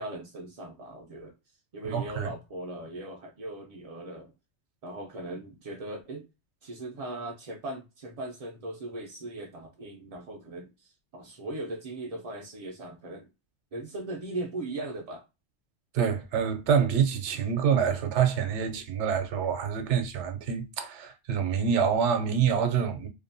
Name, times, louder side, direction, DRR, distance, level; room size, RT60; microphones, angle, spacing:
voice 1, 0.0-1.3 1.7-4.3 4.8-6.3 6.6-13.3 13.7-15.2, right 2 dB, 65° right, 0.3 m, -39 dB
voice 2, 1.8-2.3 15.9-23.1, right 7 dB, 80° right, 0.9 m, -26 dB
2.7 x 2.1 x 2.6 m
omnidirectional pair, 1.2 m